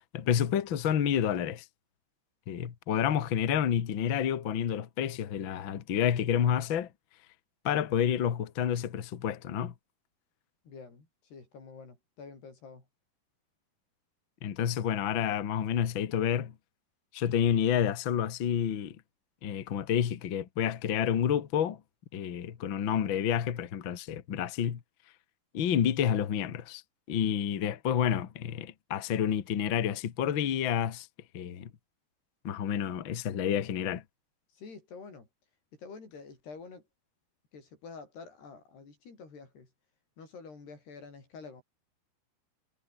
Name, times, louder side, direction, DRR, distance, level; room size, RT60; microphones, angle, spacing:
voice 1, 0.0-1.6 2.5-6.9 7.6-9.7 14.4-16.5 17.1-19.0 19.4-21.8 22.1-24.8 25.5-26.8 27.1-31.1 31.3-31.7 32.4-34.0, left 9 dB, 85° left, 1.0 m, -29 dB
voice 2, 10.7-12.9 34.5-35.3 35.7-36.8 37.5-39.7 40.2-41.6, left 4 dB, 65° left, 9.1 m, -48 dB
omnidirectional pair, 5.0 m